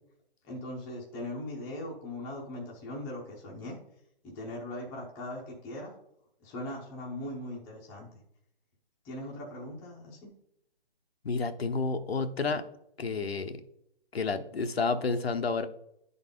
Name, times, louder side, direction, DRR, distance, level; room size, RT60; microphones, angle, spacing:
voice 1, 0.4-3.8 4.2-6.0 6.4-8.1 9.0-10.2, left 1 dB, 10° left, -3 dB, 0.7 m, -39 dB
voice 2, 11.2-12.6 13.0-13.6 14.1-15.7, left 4 dB, 80° left, 7 dB, 0.9 m, -30 dB
10.5 x 4.1 x 3.6 m, 0.74 s
hypercardioid pair, 155°, 30 cm